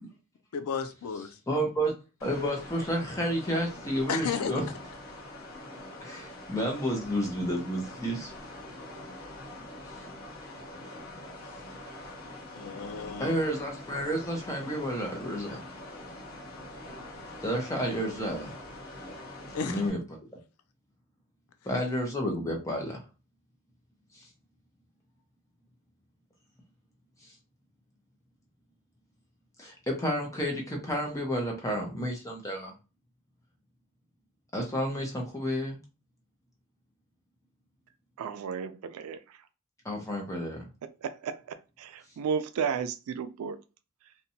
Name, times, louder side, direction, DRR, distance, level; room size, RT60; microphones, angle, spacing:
voice 1, 0.5-1.4 4.1-4.5 12.5-13.4 19.5-19.9, left 6 dB, 85° left, 0.4 m, -33 dB
voice 2, 1.5-1.9 2.2-4.6 6.0-8.3 13.2-15.6 17.4-18.5 19.7-20.0 21.6-23.0 29.6-32.7 34.5-35.8 39.8-40.6, equal, 15° left, 0.6 m, -30 dB
sound 1, 2.2-19.9, left 1 dB, 65° left, 0.9 m, -44 dB
voice 3, 38.2-39.2 41.0-41.4 41.8-43.6, right 6 dB, 80° right, 0.3 m, -33 dB
2.7 x 2.2 x 2.7 m
head